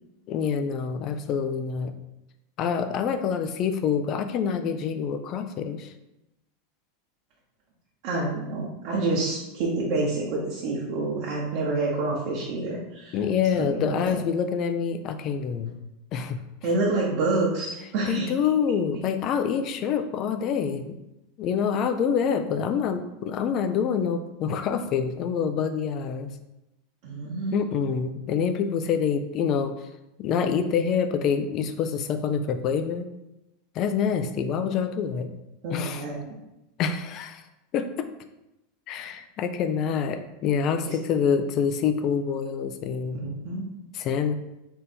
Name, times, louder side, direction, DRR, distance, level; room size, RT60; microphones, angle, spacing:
voice 1, 0.3-1.9 2.6-5.9 13.1-15.7 16.1-16.4 18.1-21.0 21.4-26.3 27.5-29.7 30.2-33.1 33.8-35.3 35.7-36.0 36.8-37.4 37.7-37.9 38.9-43.2 43.9-44.3, left 7 dB, 45° left, 8 dB, 0.4 m, -26 dB
voice 2, 8.0-13.2 13.6-14.2 16.6-18.3 27.0-27.5 35.6-36.4 40.9-41.0 43.1-43.7, right 2 dB, 60° right, -5 dB, 1.0 m, -28 dB
3.7 x 2.6 x 4.3 m, 0.91 s
hypercardioid pair, 95°, 0 cm